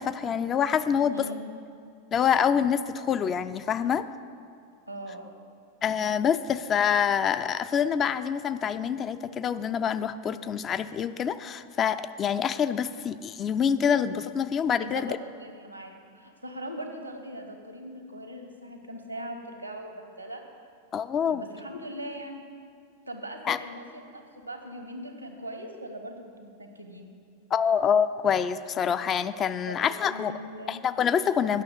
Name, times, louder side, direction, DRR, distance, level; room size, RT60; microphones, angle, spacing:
voice 1, 0.0-1.2 2.1-4.1 5.8-15.2 20.9-21.4 23.5-23.6 27.5-30.3 30.7-31.6, left 7 dB, 25° left, 12 dB, 0.3 m, -26 dB
voice 2, 0.9-1.5 4.9-5.3 14.8-20.4 21.2-22.4 23.1-27.1 29.7-30.8, right 1 dB, 90° right, 4 dB, 1.1 m, -40 dB
9.4 x 6.1 x 6.5 m, 2.3 s
figure-of-eight pair, 90°, 0 cm